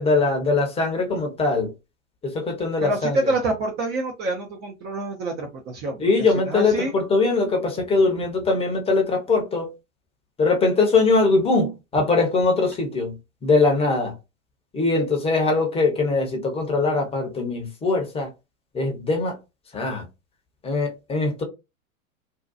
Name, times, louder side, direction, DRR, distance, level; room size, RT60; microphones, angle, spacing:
voice 1, 0.0-1.7 2.2-3.3 6.0-9.7 10.4-13.2 13.4-14.1 14.7-18.3 18.7-19.4 19.7-20.0 20.6-21.4, left 3 dB, 15° left, 0.8 m, -21 dB
voice 2, 2.8-6.1 6.5-6.9, right 2 dB, 25° right, 0.5 m, -27 dB
2.7 x 2.2 x 2.3 m
figure-of-eight pair, 100°, 41 cm